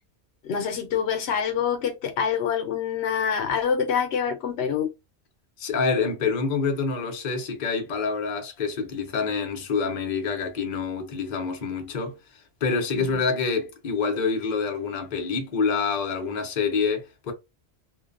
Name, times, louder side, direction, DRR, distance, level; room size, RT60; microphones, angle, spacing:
voice 1, 0.4-4.9 12.9-13.2, left 7 dB, 80° left, 0.9 m, -26 dB
voice 2, 5.6-12.2 12.6-17.3, left 5 dB, 50° left, 0.7 m, -27 dB
2.5 x 2.1 x 2.4 m
omnidirectional pair, 1.1 m